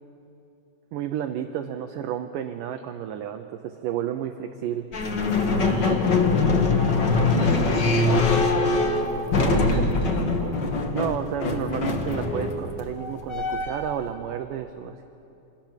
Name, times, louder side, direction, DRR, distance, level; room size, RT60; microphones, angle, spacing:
voice 1, 0.9-4.9 9.4-9.9 10.9-15.1, right 10 dB, 75° right, 7 dB, 2.0 m, -31 dB
sound 1, 4.9-14.0, left 3 dB, 60° left, 1.1 m, -23 dB
voice 2, 5.6-6.1 7.1-9.2 9.5-10.7, equal, 25° left, -3 dB, 7.6 m, -32 dB
27.0 x 24.5 x 7.5 m, 2.8 s
omnidirectional pair, 4.8 m